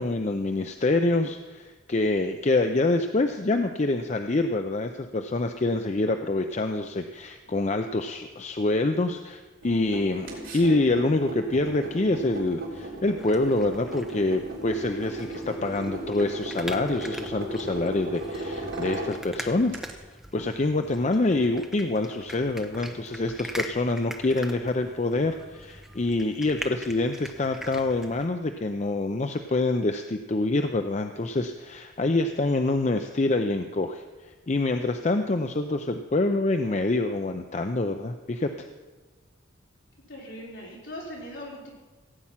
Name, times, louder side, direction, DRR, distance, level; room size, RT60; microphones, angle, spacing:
voice 1, 0.0-19.8 20.3-38.7, left 2 dB, 35° left, 7 dB, 0.5 m, -26 dB
sound 1, 9.6-19.9, right 1 dB, 80° right, 3.8 m, -36 dB
sound 2, 13.2-28.3, equal, ahead, 0.7 m, -42 dB
voice 2, 40.1-41.8, equal, 65° left, -4 dB, 4.8 m, -40 dB
16.5 x 8.7 x 5.7 m, 1.3 s
head